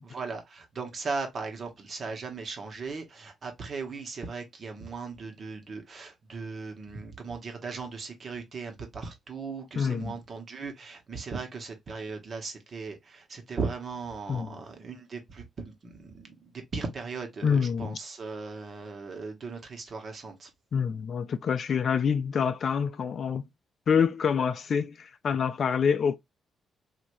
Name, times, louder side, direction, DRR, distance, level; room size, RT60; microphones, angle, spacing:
voice 1, 0.1-20.5, right 4 dB, 50° right, 1.2 m, -38 dB
voice 2, 9.8-10.2 14.3-14.5 17.4-18.0 20.7-23.4 23.9-26.2, left 6 dB, 60° left, 0.4 m, -26 dB
3.2 x 2.7 x 2.6 m
supercardioid pair, 60°, 0 cm